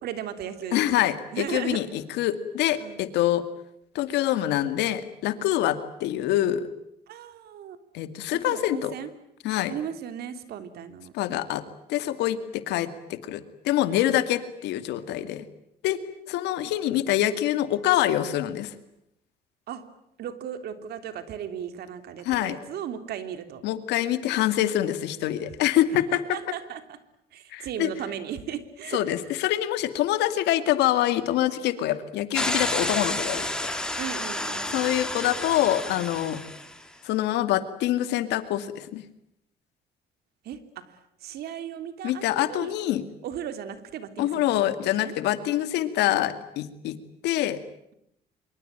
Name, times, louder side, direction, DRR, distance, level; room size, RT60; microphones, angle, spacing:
voice 1, 0.0-0.8 1.3-1.8 2.8-3.1 7.1-7.8 8.3-9.1 9.7-11.1 15.2-15.4 19.7-19.8 20.2-23.6 25.9-27.0 27.3-29.3 31.8-31.9 34.0-34.8 40.4-42.7 43.2-45.1 46.0-46.1, right 9 dB, 70° right, 10 dB, 3.3 m, -36 dB
voice 2, 0.7-1.9 2.2-3.4 3.9-6.7 7.9-8.9 9.4-9.7 11.1-11.6 11.9-15.5 15.8-16.0 16.3-18.8 22.3-22.6 23.6-26.2 27.5-27.9 28.9-33.7 34.7-36.4 37.0-39.0 42.0-43.0 44.2-47.0 47.2-47.6, left 13 dB, 85° left, 11 dB, 2.4 m, -25 dB
sound 1, 32.3-36.8, left 1 dB, 5° left, 3.4 m, -30 dB
26.0 x 24.0 x 9.1 m, 0.76 s
cardioid pair, 110°, 17 cm